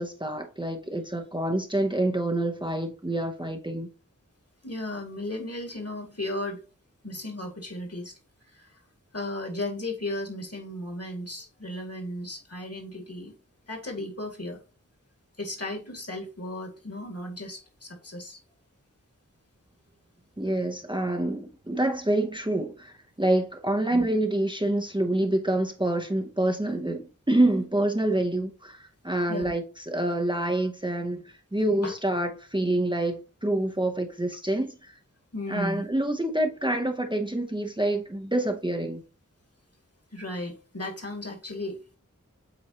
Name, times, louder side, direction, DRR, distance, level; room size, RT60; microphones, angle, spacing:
voice 1, 0.0-3.9 20.4-35.0 35.5-39.0, right 1 dB, 15° right, 0.8 m, -27 dB
voice 2, 4.6-6.6 7.0-8.1 8.5-8.7 9.1-13.3 13.7-14.6 15.4-18.4 23.9-24.1 29.3-29.5 31.8-31.9 35.3-35.9 40.1-41.8, left 1 dB, 50° left, 2.1 m, -35 dB
7.9 x 4.2 x 2.9 m
wide cardioid pair, 45°, 31 cm